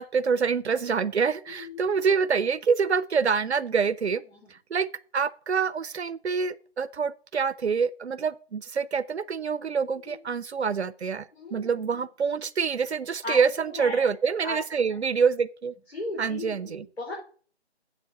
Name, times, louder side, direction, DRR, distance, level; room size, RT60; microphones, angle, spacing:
voice 1, 0.0-4.2 4.7-4.9 5.1-15.7 16.2-16.9, right 6 dB, 80° right, 0.6 m, -26 dB
voice 2, 1.5-1.9 4.3-4.5 10.1-10.2 11.3-11.9 13.2-14.1 14.4-15.0 15.9-17.1, left 2 dB, 80° left, 4.3 m, -37 dB
7.8 x 6.1 x 7.6 m
figure-of-eight pair, 180°, 33 cm